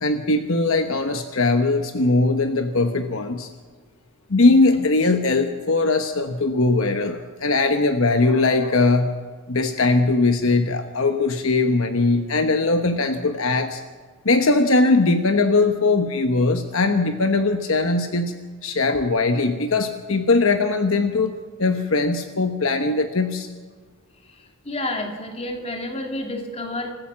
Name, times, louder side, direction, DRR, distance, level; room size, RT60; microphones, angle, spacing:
voice 1, 0.0-3.5 4.3-9.1 9.5-13.8 14.2-18.3 18.6-21.3 21.6-23.5, left 3 dB, 60° left, 7 dB, 1.1 m, -20 dB
voice 2, 24.6-26.9, left 1 dB, 30° left, 3 dB, 2.5 m, -30 dB
26.5 x 15.0 x 7.4 m, 1.4 s
head